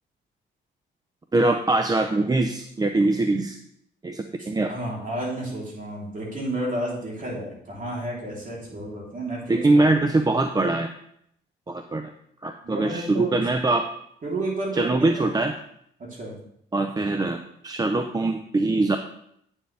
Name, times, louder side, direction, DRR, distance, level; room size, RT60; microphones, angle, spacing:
voice 1, 1.3-3.6 4.0-4.7 9.5-10.9 11.7-12.1 12.4-13.8 14.7-15.5 16.7-17.4 17.6-19.0, right 2 dB, 20° right, 6 dB, 0.5 m, -22 dB
voice 2, 4.4-9.8 12.6-13.4 14.2-15.3 16.0-16.3, right 1 dB, 40° right, -3 dB, 3.4 m, -31 dB
9.1 x 7.0 x 3.4 m, 0.71 s
cardioid pair, 90°, 20 cm